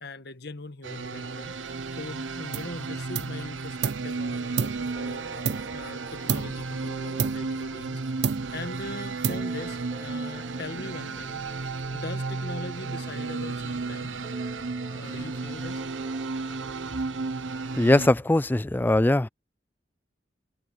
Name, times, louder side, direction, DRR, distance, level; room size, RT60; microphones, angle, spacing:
voice 1, 0.0-11.5 11.9-14.1 14.9-15.8, left 2 dB, 60° left, 1.5 m, -41 dB
sound 1, 0.8-18.1, right 3 dB, 80° right, 1.0 m, -33 dB
sound 2, 0.9-18.7, right 1 dB, 20° right, 4.4 m, -49 dB
sound 3, 2.5-2.8 3.1-4.1 4.6-5.9 6.3-6.7 7.2-7.9 8.2-8.7 9.2-9.8, right 6 dB, 60° right, 0.4 m, -31 dB
voice 2, 17.8-19.3, left 1 dB, 10° left, 0.3 m, -21 dB
head